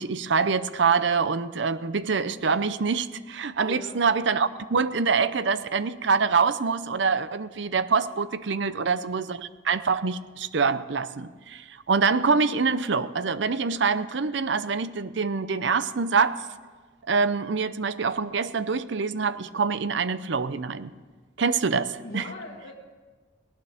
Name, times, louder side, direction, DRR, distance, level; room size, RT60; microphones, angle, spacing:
voice 1, 0.0-16.4 17.1-20.9 21.4-22.2, right 5 dB, 70° right, 14 dB, 0.6 m, -25 dB
voice 2, 3.6-4.0 8.6-8.9 22.0-22.7, left 1 dB, 60° left, -5 dB, 2.1 m, -40 dB
19.0 x 18.0 x 3.6 m, 1.4 s
head